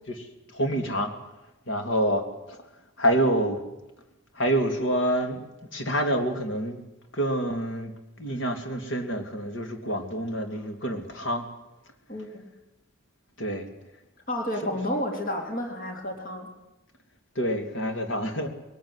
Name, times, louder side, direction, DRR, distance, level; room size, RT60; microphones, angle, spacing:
voice 1, 0.5-1.1 1.7-2.6 3.0-3.6 4.3-5.4 5.7-6.8 7.1-11.5 13.4-13.7 17.3-18.5, equal, 60° left, 6 dB, 3.0 m, -27 dB
voice 2, 12.1-12.5 14.3-16.5, left 1 dB, 45° left, 3 dB, 3.6 m, -31 dB
21.5 x 18.5 x 9.8 m, 0.97 s
head